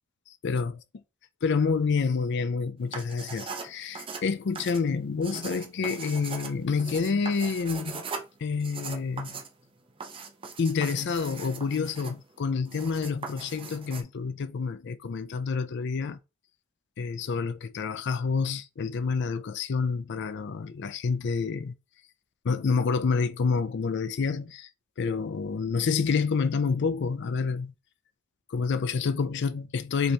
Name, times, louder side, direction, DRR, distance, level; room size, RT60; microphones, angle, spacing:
voice 1, 1.4-8.1 8.4-9.4 10.6-16.2 17.0-21.7 22.4-24.7 25.0-27.7 28.5-30.1, left 5 dB, 55° left, 0.4 m, -28 dB
sound 1, 2.8-14.0, right 5 dB, 25° right, 0.6 m, -40 dB
5.2 x 2.9 x 3.3 m
head